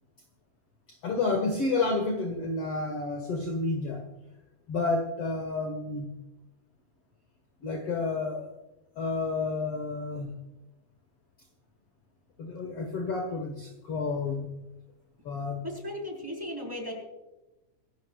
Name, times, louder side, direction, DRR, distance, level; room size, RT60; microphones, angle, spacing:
voice 1, 0.9-4.0 4.7-6.1 7.6-8.6 9.0-10.4 12.4-14.5 15.3-15.6, left 3 dB, 50° left, 4 dB, 2.1 m, -30 dB
voice 2, 15.6-16.9, left 1 dB, 5° right, -1 dB, 4.6 m, -36 dB
26.5 x 12.5 x 2.4 m, 1.0 s
omnidirectional pair, 3.9 m